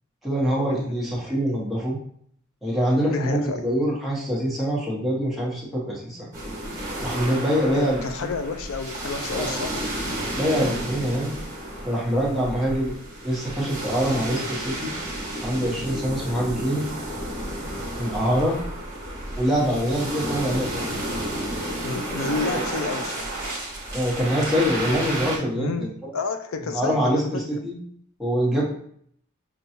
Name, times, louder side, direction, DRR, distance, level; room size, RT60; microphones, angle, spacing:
voice 1, 0.2-2.0 2.6-6.3 7.0-8.3 9.3-9.6 10.3-11.3 11.8-13.0 13.2-14.9 15.4-16.9 18.0-18.6 19.4-20.9 23.9-25.7 26.7-27.8 28.2-28.6, equal, ahead, -6 dB, 1.1 m, -24 dB
voice 2, 3.1-3.7 7.7-9.9 19.6-20.0 21.8-23.4 25.5-27.5, left 4 dB, 75° left, 7 dB, 0.4 m, -30 dB
sound 1, 6.3-25.4, right 1 dB, 15° right, 1.1 m, -31 dB
5.3 x 2.3 x 2.7 m, 0.64 s
head